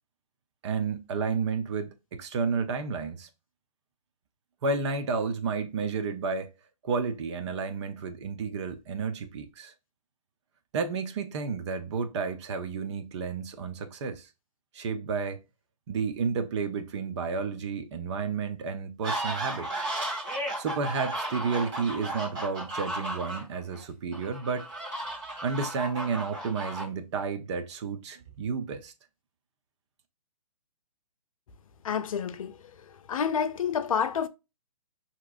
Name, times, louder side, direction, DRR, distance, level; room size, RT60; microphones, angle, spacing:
voice 1, 0.6-3.3 4.6-6.5 6.8-9.7 10.7-14.3 14.7-15.4 15.9-19.8 20.4-24.7 25.4-28.9, right 5 dB, 50° right, 0.8 m, -31 dB
sound 1, 19.0-23.8 24.1-26.8, right 1 dB, 25° right, 2.2 m, -34 dB
voice 2, 31.8-32.6 33.1-34.3, left 7 dB, 65° left, 0.5 m, -28 dB
5.8 x 3.0 x 2.6 m
hypercardioid pair, 130°, 19 cm